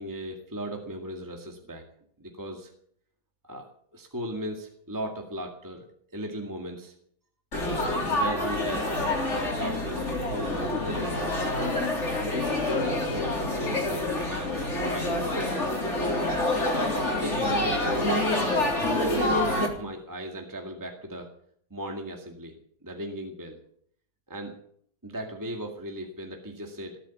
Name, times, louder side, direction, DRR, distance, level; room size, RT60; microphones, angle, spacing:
voice 1, 0.0-1.8 2.2-2.7 3.4-3.7 3.9-5.9 6.1-6.9 8.0-8.9 9.3-11.3 12.2-14.6 14.9-15.5 16.6-18.2 18.9-19.4 19.7-21.3 21.7-23.6 24.3-24.6 25.0-27.0, equal, 10° right, 2 dB, 1.9 m, -36 dB
Laughter / Chatter / Crowd, 7.5-19.7, left 1 dB, 40° left, 3.8 m, -27 dB
19.5 x 8.3 x 8.6 m, 0.64 s
omnidirectional pair, 2.0 m